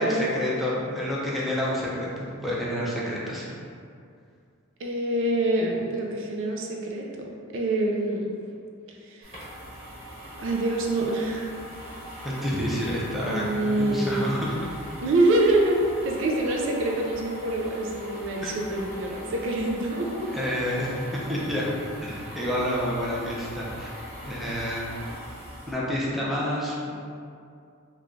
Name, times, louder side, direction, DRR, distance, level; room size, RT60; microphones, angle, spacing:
voice 1, 0.0-3.5 12.2-14.6 18.4-18.5 20.3-21.7 22.0-23.9 24.2-25.0 25.7-26.9, equal, ahead, -7 dB, 0.5 m, -29 dB
voice 2, 4.8-8.3 8.9-9.3 10.4-11.5 13.2-14.3 15.0-20.3, right 1 dB, 65° right, -1 dB, 0.4 m, -26 dB
sound 1, 9.2-25.7, equal, 35° right, 1.2 m, -41 dB
3.1 x 2.3 x 3.7 m, 2.4 s
head